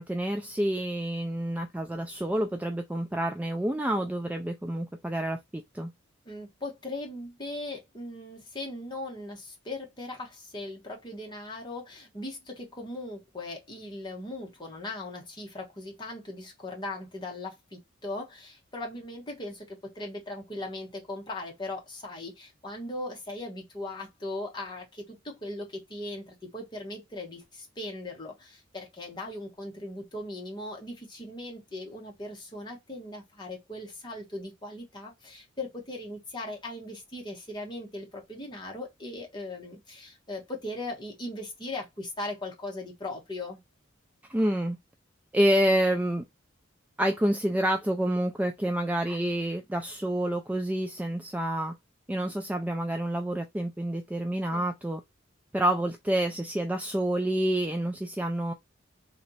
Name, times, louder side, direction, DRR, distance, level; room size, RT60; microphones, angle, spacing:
voice 1, 0.0-5.9 44.3-44.8 45.3-46.2 47.0-51.7 52.1-55.0 55.5-58.5, right 1 dB, 10° right, 0.3 m, -28 dB
voice 2, 6.2-43.6 54.5-54.6, left 2 dB, 20° left, 1.2 m, -39 dB
3.2 x 2.9 x 4.0 m
head